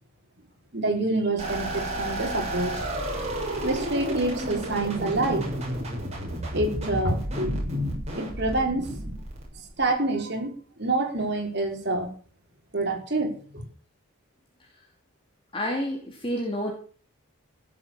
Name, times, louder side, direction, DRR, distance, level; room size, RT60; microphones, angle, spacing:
voice 1, 0.7-2.8 3.6-5.5 6.5-9.2 9.8-10.5 10.8-12.1 12.7-13.6, right 2 dB, 50° right, 3 dB, 4.1 m, -27 dB
sound 1, 1.4-9.8, right 1 dB, 30° right, 6.9 m, -32 dB
voice 2, 15.5-16.7, equal, 25° left, 0 dB, 2.6 m, -29 dB
16.0 x 7.9 x 7.4 m, 0.42 s
head